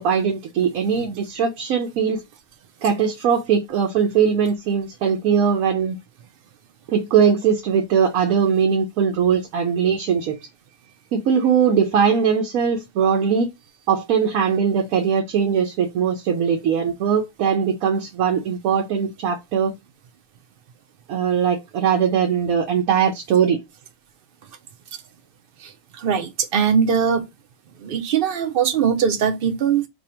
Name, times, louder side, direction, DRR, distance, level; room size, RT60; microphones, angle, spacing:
voice 1, 0.0-2.2 2.8-6.0 6.9-10.4 11.1-13.5 13.9-19.7 21.1-23.6, right 7 dB, 85° right, 1.1 m, -20 dB
voice 2, 25.6-27.2 27.8-29.9, right 7 dB, 55° right, 0.6 m, -21 dB
2.7 x 2.6 x 4.2 m
omnidirectional pair, 1.4 m